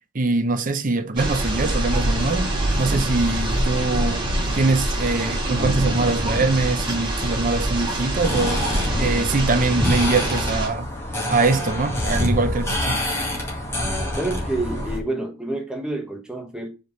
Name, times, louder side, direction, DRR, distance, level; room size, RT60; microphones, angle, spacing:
voice 1, 0.1-4.3 4.5-10.9 11.3-13.0, right 3 dB, 40° right, 0.7 m, -23 dB
sound 1, 1.2-10.7, right 1 dB, 25° right, 2.8 m, -24 dB
sound 2, 8.2-15.0, left 1 dB, 15° left, 1.8 m, -26 dB
voice 2, 14.1-16.7, right 2 dB, 5° right, 1.2 m, -28 dB
5.1 x 4.6 x 4.0 m
head